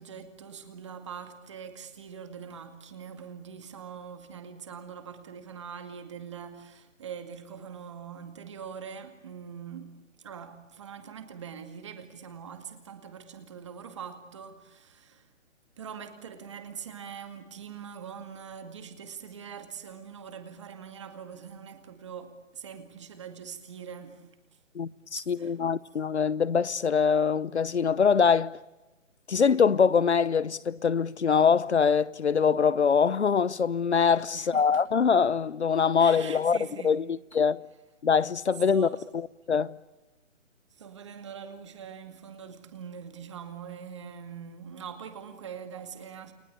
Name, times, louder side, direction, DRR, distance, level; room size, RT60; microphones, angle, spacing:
voice 1, 0.0-15.3 15.8-24.3 25.2-25.5 34.3-34.8 36.0-37.0 38.7-39.1 40.7-46.3, right 7 dB, 25° right, 2.2 m, -43 dB
voice 2, 24.7-28.6 29.3-36.6 36.8-37.6 38.0-38.9 39.1-39.8, left 6 dB, 60° left, 0.9 m, -24 dB
30.0 x 22.0 x 8.7 m
hypercardioid pair, 175°, 38 cm